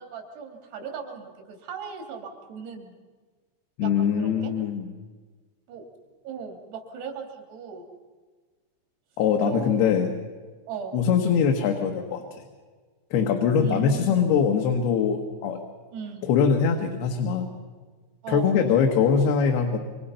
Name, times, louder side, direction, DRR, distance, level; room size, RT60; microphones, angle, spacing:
voice 1, 0.0-3.0 3.8-4.5 5.7-5.9 6.2-7.9 9.5-10.1 10.7-11.0 13.6-14.3 15.9-16.3 18.2-18.6, right 6 dB, 85° right, 3 dB, 5.0 m, -37 dB
voice 2, 3.8-4.9 9.2-10.1 10.9-12.4 13.1-15.6 16.2-17.5 18.3-19.8, left 6 dB, 75° left, 3 dB, 3.5 m, -22 dB
26.0 x 25.0 x 5.7 m, 1.4 s
omnidirectional pair, 4.6 m